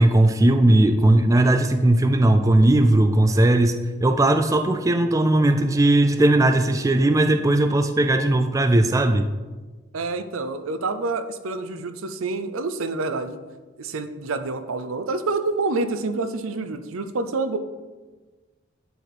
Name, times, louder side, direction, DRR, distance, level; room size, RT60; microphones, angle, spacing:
voice 1, 0.0-9.3, right 1 dB, 15° right, 8 dB, 0.3 m, -18 dB
voice 2, 9.9-13.4 13.8-17.6, right 3 dB, 85° right, 10 dB, 0.6 m, -27 dB
10.0 x 4.2 x 4.3 m, 1.3 s
head